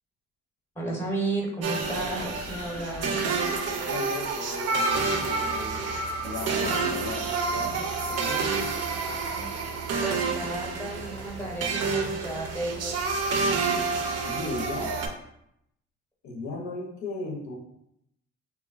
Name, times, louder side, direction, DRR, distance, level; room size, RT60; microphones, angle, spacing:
voice 1, 0.8-3.2 10.0-13.0, right 2 dB, 10° left, -2 dB, 0.7 m, -33 dB
sound 1, 1.6-15.1, right 4 dB, 55° right, 0.5 m, -29 dB
sound 2, 1.8-6.6, left 2 dB, 30° left, 0.4 m, -45 dB
voice 2, 3.7-5.9 6.2-7.3 7.5-8.7 14.3-14.9 16.2-17.6, left 3 dB, 70° left, -1 dB, 0.7 m, -36 dB
sound 3, 4.9-15.1, right 5 dB, 90° right, 0.7 m, -41 dB
3.0 x 2.1 x 2.4 m, 0.78 s
cardioid pair, 90°, 30 cm